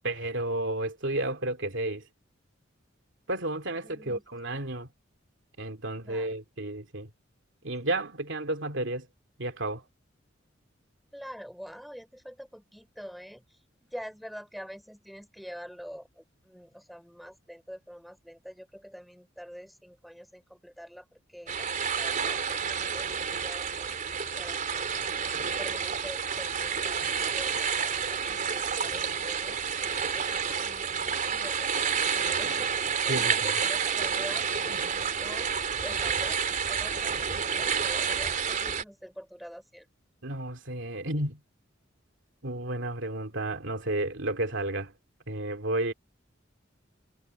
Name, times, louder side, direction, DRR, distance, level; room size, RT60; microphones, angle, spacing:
voice 1, 0.0-2.0 3.3-4.9 5.6-7.1 7.6-9.1 9.4-9.8 33.1-33.5 40.2-41.4 42.4-44.9 45.3-45.9, right 2 dB, 70° right, 2.8 m, -32 dB
voice 2, 3.8-4.2 6.0-6.3 11.1-24.0 24.3-39.9, equal, ahead, 4.7 m, -46 dB
sound 1, 21.5-38.8, right 6 dB, 45° right, 3.5 m, -29 dB
head